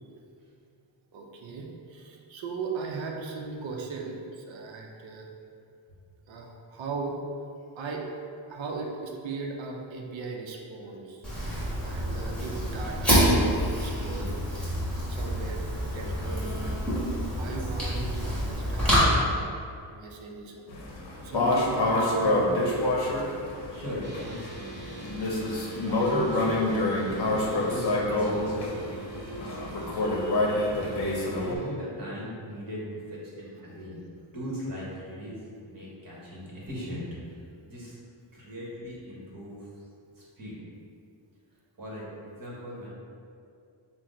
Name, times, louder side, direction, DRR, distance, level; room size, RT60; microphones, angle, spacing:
voice 1, 1.1-5.3 6.3-7.2 7.8-8.1 8.5-11.3 11.8-14.4 15.1-15.6 15.9-16.6 17.3-19.3 19.9-20.6 21.2-22.9 30.0-30.9, right 4 dB, 70° right, 0 dB, 0.7 m, -38 dB
Fire, 11.2-19.0, equal, ahead, 1.4 m, -27 dB
sound 1, 20.7-31.6, left 1 dB, 55° left, 0.7 m, -27 dB
voice 2, 21.4-21.8 23.7-25.0 25.6-30.0 30.9-34.0 34.3-37.4 37.6-38.0 38.3-39.7 40.2-40.6 41.8-42.9, equal, 45° right, -6 dB, 1.3 m, -39 dB
sound 2, 24.0-31.8, right 5 dB, 25° right, 0.7 m, -45 dB
5.9 x 2.2 x 3.7 m, 2.4 s
wide cardioid pair, 145°, 47 cm